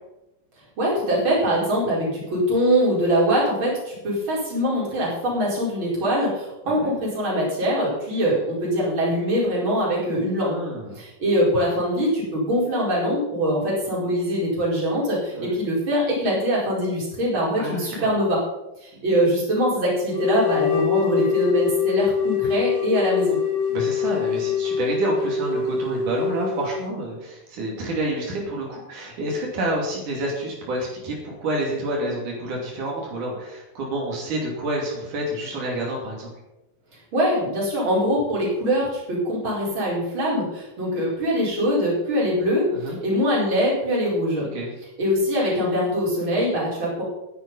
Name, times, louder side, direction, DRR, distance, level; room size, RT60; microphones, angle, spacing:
voice 1, 0.8-10.5 11.0-18.4 18.8-23.4 37.1-44.5 45.0-47.0, equal, 40° right, -5 dB, 5.3 m, -23 dB
voice 2, 10.4-11.0 15.4-15.6 17.6-18.1 18.9-19.0 23.7-36.3 42.7-43.0 44.4-44.7, right 1 dB, 90° right, -2 dB, 4.2 m, -29 dB
sound 1, 20.1-26.9, left 7 dB, 85° left, 4.0 m, -24 dB
12.0 x 10.0 x 5.4 m, 0.91 s
omnidirectional pair, 3.5 m